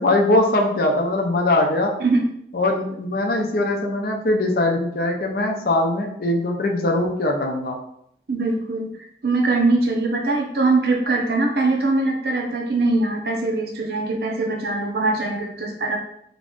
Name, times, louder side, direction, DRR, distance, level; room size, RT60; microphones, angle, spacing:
voice 1, 0.0-1.9 2.5-7.8, left 2 dB, 55° left, 2 dB, 0.5 m, -21 dB
voice 2, 8.3-8.9 9.2-16.0, right 3 dB, 60° right, 1 dB, 0.6 m, -22 dB
2.9 x 2.5 x 3.5 m, 0.71 s
head